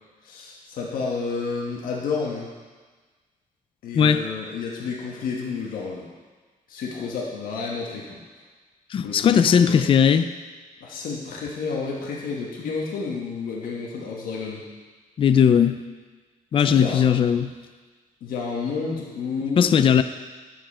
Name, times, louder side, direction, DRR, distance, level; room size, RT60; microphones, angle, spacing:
voice 1, 0.2-2.5 3.8-6.1 6.7-8.2 9.0-9.8 10.8-14.6 16.6-17.0 18.2-19.7, left 4 dB, 75° left, -3 dB, 1.5 m, -30 dB
voice 2, 8.9-10.3 15.2-15.8 16.5-17.5 19.6-20.0, left 7 dB, 35° left, 10 dB, 0.4 m, -18 dB
10.5 x 7.7 x 4.3 m, 1.4 s
cardioid pair, 145°, 15 cm